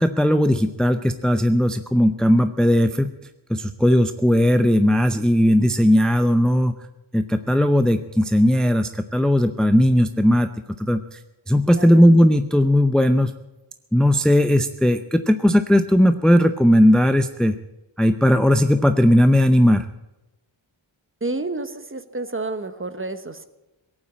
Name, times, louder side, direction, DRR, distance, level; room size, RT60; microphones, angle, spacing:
voice 1, 0.0-3.1 3.5-6.7 7.1-10.5 10.8-11.2 11.5-13.3 13.9-17.5 18.0-19.9, equal, ahead, 9 dB, 0.6 m, -17 dB
voice 2, 11.6-12.1 21.2-23.5, right 2 dB, 25° right, 11 dB, 1.1 m, -30 dB
18.0 x 8.9 x 8.6 m, 0.99 s
wide cardioid pair, 80°, 47 cm